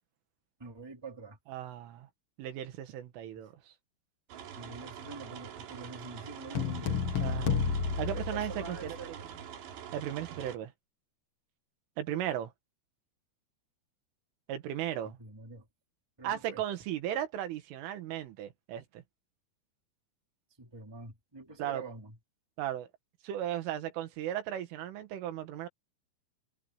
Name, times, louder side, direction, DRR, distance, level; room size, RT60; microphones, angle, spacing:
voice 1, 0.6-1.4 4.5-7.1 8.0-9.3 15.2-15.7 16.2-16.6 20.6-22.2, right 3 dB, 5° right, 2.2 m, -46 dB
voice 2, 1.5-2.1 2.4-3.7 7.2-7.7 8.0-9.0 9.9-10.7 12.0-12.5 14.5-15.2 16.2-19.0 21.6-21.8 22.6-22.9 23.2-25.7, right 11 dB, 85° right, 4.4 m, -36 dB
sound 1, 4.3-10.6, right 9 dB, 65° right, 4.6 m, -45 dB
sound 2, 6.5-9.1, left 6 dB, 70° left, 1.3 m, -31 dB
omnidirectional pair, 5.5 m